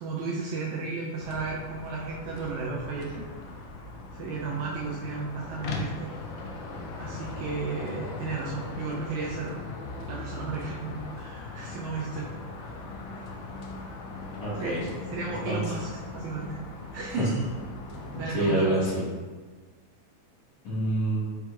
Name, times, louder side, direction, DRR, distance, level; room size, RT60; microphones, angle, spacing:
voice 1, 0.0-3.3 4.1-6.1 7.0-9.6 10.1-12.3 14.5-14.8 15.1-16.6 16.9-17.4 18.2-18.7, right 4 dB, 80° right, -4 dB, 1.7 m, -34 dB
sound 1, 1.2-18.4, left 3 dB, 80° left, 1.9 m, -39 dB
voice 2, 14.4-14.8 15.5-15.6 17.2-17.3 18.3-19.0 20.7-21.2, right 1 dB, 65° left, -7 dB, 1.9 m, -26 dB
6.0 x 2.9 x 2.3 m, 1.4 s
omnidirectional pair, 3.7 m